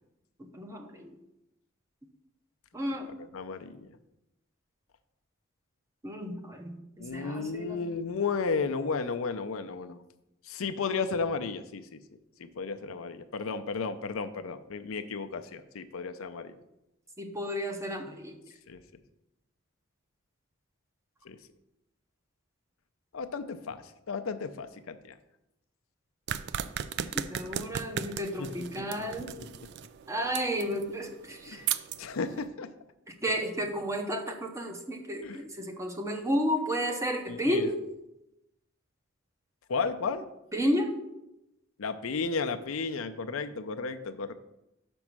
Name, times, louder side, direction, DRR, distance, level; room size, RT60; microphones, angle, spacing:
voice 1, 0.4-1.1 2.7-3.1 6.0-7.9 17.2-18.4 27.1-29.3 30.1-31.7 33.1-37.8 40.5-40.9, equal, 15° right, 5 dB, 0.7 m, -32 dB
voice 2, 3.3-3.9 7.0-10.0 10.5-12.0 12.4-16.6 18.7-18.8 21.3-21.4 23.1-25.1 28.4-28.5 29.0-29.5 31.5-31.7 32.0-32.7 35.2-35.4 37.3-37.7 39.7-40.3 41.8-44.3, left 4 dB, 80° left, 9 dB, 0.5 m, -33 dB
sound 1, 26.3-32.5, right 9 dB, 55° right, 0.3 m, -37 dB
6.0 x 5.3 x 6.0 m, 0.90 s
head